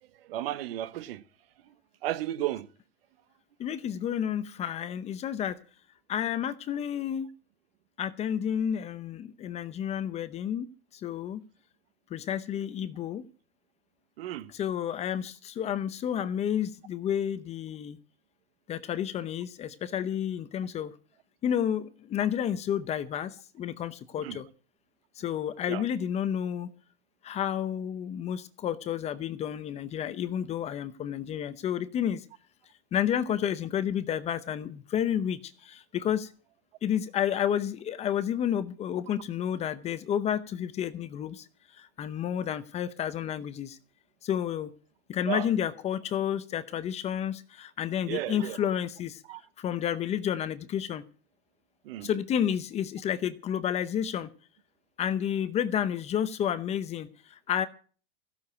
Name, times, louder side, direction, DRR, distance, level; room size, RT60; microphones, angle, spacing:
voice 1, 0.3-1.2 2.0-2.7 14.2-14.5 24.2-24.4 25.7-25.8 45.3-45.5 48.1-48.6 49.3-49.4 51.8-52.1, right 14 dB, 65° right, 1.1 m, -33 dB
voice 2, 3.6-5.6 6.1-7.3 8.0-10.7 11.0-11.4 12.1-13.3 14.5-18.0 18.7-20.9 21.4-24.5 25.2-26.7 27.2-32.2 32.9-36.3 36.8-41.4 41.8-43.8 44.2-44.7 45.1-49.2 49.6-51.0 52.0-54.3 55.0-57.7, left 9 dB, 20° left, 0.7 m, -30 dB
15.5 x 6.9 x 8.2 m
supercardioid pair, 150°, 31 cm